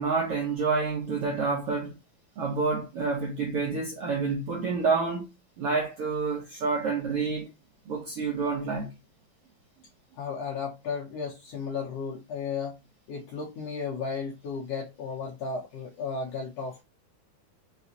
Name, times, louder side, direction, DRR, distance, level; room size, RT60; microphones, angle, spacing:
voice 1, 0.0-2.0 2.4-5.3 5.6-7.5 7.9-8.9, right 4 dB, 80° right, 1.3 m, -28 dB
voice 2, 10.2-12.8 13.1-16.8, left 5 dB, 75° left, 1.5 m, -34 dB
5.3 x 2.4 x 2.7 m
omnidirectional pair, 3.9 m